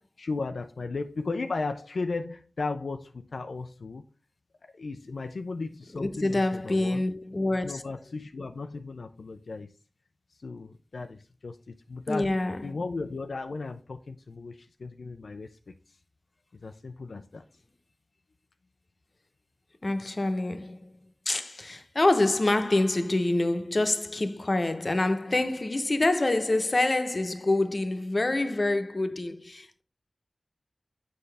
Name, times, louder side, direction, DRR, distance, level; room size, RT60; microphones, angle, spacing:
voice 1, 0.2-4.0 4.6-7.0 7.6-9.7 10.4-15.7 16.5-17.4, left 3 dB, 90° left, 0.5 m, -36 dB
voice 2, 5.9-7.8 12.1-12.8 19.8-20.9 21.3-29.8, left 2 dB, 45° left, 0.9 m, -26 dB
7.8 x 5.4 x 3.4 m
wide cardioid pair, 55°, 0 cm